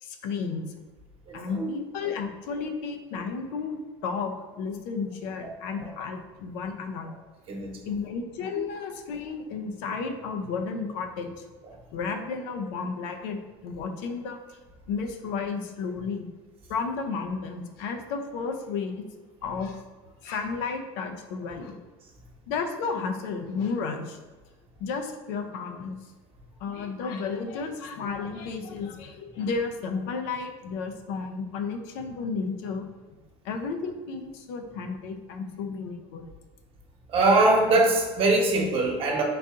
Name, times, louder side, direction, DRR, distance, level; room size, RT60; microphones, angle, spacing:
voice 1, 0.0-0.6 1.3-7.1 7.8-11.3 11.9-13.4 13.6-14.6 14.9-16.3 16.7-19.1 19.4-19.8 20.2-21.8 22.5-24.2 24.8-26.0 26.6-32.8 33.4-36.2, left 5 dB, 70° left, 5 dB, 0.6 m, -32 dB
voice 2, 1.3-1.7 5.4-5.5 5.8-5.9 7.5-7.9 37.1-39.2, right 2 dB, 45° right, 0 dB, 1.0 m, -22 dB
3.9 x 2.7 x 3.6 m, 1.3 s
supercardioid pair, 105°, 14 cm